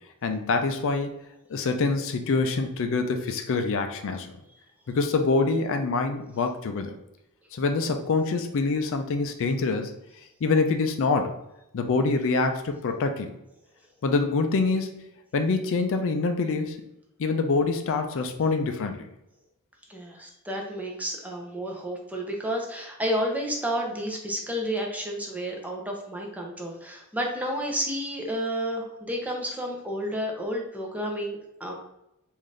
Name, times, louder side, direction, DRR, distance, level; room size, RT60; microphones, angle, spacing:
voice 1, 0.2-1.2 1.5-4.3 4.9-7.0 7.5-9.9 10.4-11.3 11.7-13.3 14.0-15.1 15.3-16.8 17.2-19.1, left 3 dB, 60° left, 6 dB, 0.4 m, -25 dB
voice 2, 19.9-31.7, equal, 5° right, 0 dB, 0.6 m, -31 dB
3.7 x 2.6 x 3.2 m, 0.85 s
head